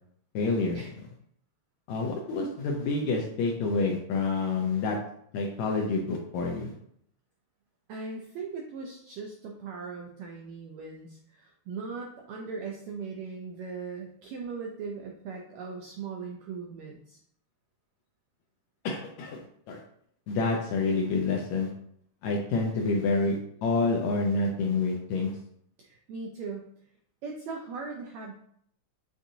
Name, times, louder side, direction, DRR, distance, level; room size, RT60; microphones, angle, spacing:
voice 1, 0.3-0.8 1.9-5.0 5.3-6.7 18.8-19.8 20.3-21.7 22.2-25.3, left 3 dB, 80° left, 0 dB, 1.7 m, -28 dB
voice 2, 7.9-17.2 25.8-26.9 27.2-28.3, right 4 dB, 85° right, 1 dB, 1.5 m, -39 dB
7.2 x 2.6 x 2.6 m, 0.68 s
omnidirectional pair, 3.7 m